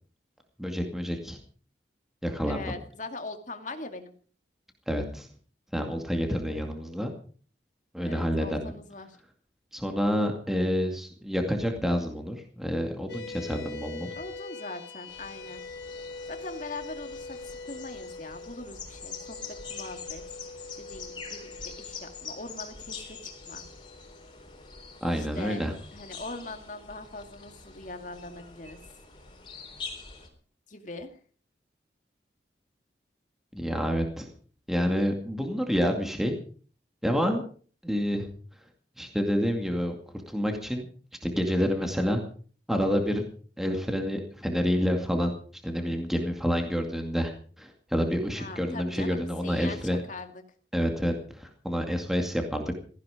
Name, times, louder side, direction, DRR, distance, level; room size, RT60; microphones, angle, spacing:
voice 1, 0.6-1.4 2.2-2.7 4.9-5.3 5.7-7.1 7.9-8.7 9.7-14.1 25.0-25.7 33.5-34.3 34.7-36.4 37.0-37.4 37.8-38.3 39.0-39.9 40.3-40.9 41.2-42.2 42.7-43.2 43.6-45.3 45.6-47.3 47.6-50.0 50.7-52.8, equal, ahead, 3 dB, 2.3 m, -28 dB
voice 2, 2.4-4.1 6.5-6.7 8.0-9.2 14.2-15.6 16.3-20.2 20.8-23.6 25.1-25.7 25.9-28.8 30.7-31.1 48.3-50.4, left 2 dB, 45° left, 6 dB, 2.3 m, -41 dB
sound 1, 13.1-25.7, left 3 dB, 65° left, 2.7 m, -44 dB
sound 2, 15.1-30.3, left 5 dB, 25° left, 4.1 m, -44 dB
17.5 x 15.0 x 5.1 m, 0.43 s
head